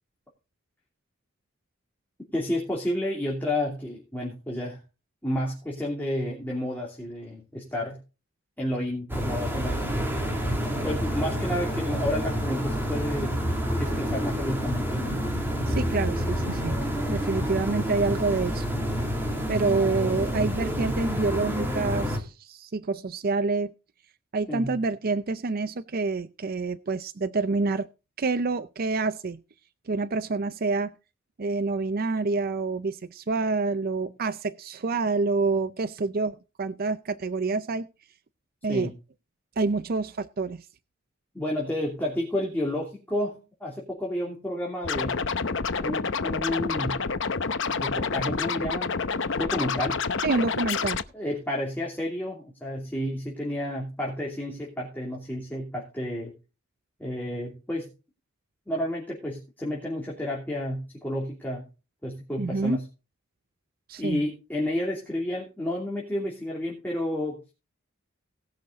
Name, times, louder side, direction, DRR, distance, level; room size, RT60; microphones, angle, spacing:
voice 1, 2.3-4.8 5.2-8.0 8.6-9.8 10.8-13.4 13.8-15.2 24.5-24.7 38.7-38.9 41.3-45.2 45.8-47.0 47.7-49.0 49.4-50.0 51.1-56.3 57.0-57.9 58.7-61.6 62.0-62.8 64.0-67.4, left 1 dB, 10° left, -3 dB, 2.9 m, -31 dB
sound 1, 9.1-22.2, equal, 10° right, 2.8 m, -28 dB
voice 2, 15.7-16.8 17.1-18.7 19.5-23.7 24.3-27.9 28.2-29.4 29.9-30.9 31.4-37.9 38.6-38.9 39.6-40.7 50.2-51.0 62.4-62.8 63.9-64.2, right 3 dB, 45° right, 11 dB, 0.5 m, -27 dB
Scratching (performance technique), 44.8-51.0, left 5 dB, 60° left, 0.8 m, -28 dB
18.5 x 6.5 x 4.0 m, 0.31 s
head